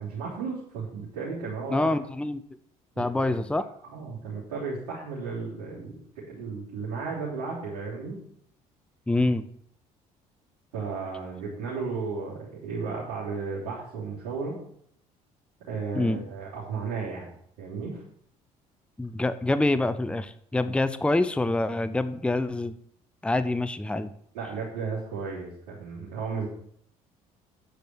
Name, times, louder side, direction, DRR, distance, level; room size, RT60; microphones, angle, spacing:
voice 1, 0.0-1.9 3.0-3.3 3.8-8.2 10.7-14.6 15.7-17.3 17.6-18.0 24.3-26.5, right 4 dB, 85° right, -9 dB, 3.3 m, -34 dB
voice 2, 1.7-2.4 3.0-3.6 9.1-9.5 15.9-16.2 19.0-22.8 23.2-24.1, left 2 dB, 5° left, 13 dB, 0.6 m, -26 dB
9.1 x 5.2 x 6.2 m, 0.67 s
hypercardioid pair, 60°, 18 cm